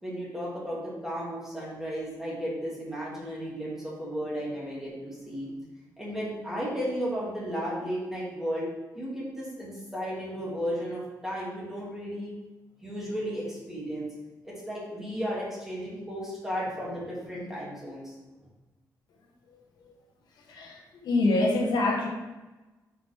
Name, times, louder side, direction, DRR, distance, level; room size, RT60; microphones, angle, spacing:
voice 1, 0.0-5.5 6.0-8.7 8.9-12.3 12.8-14.1 14.4-18.1, equal, 5° right, -6 dB, 2.1 m, -34 dB
voice 2, 20.5-22.1, left 2 dB, 75° left, 1 dB, 1.1 m, -25 dB
8.4 x 5.0 x 3.3 m, 1.1 s
wide cardioid pair, 175°, 7 cm